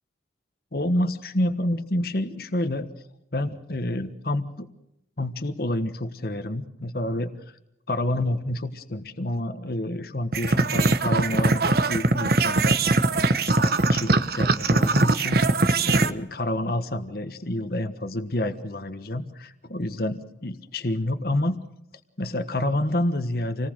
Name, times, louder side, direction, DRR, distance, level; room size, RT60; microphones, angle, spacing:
voice 1, 0.7-2.9 3.3-4.7 5.2-7.3 7.9-15.4 15.8-21.6 22.2-23.7, left 1 dB, 55° left, 9 dB, 1.4 m, -28 dB
sound 1, 10.3-16.1, right 2 dB, 55° right, 1.1 m, -21 dB
28.0 x 19.0 x 6.5 m, 0.81 s
head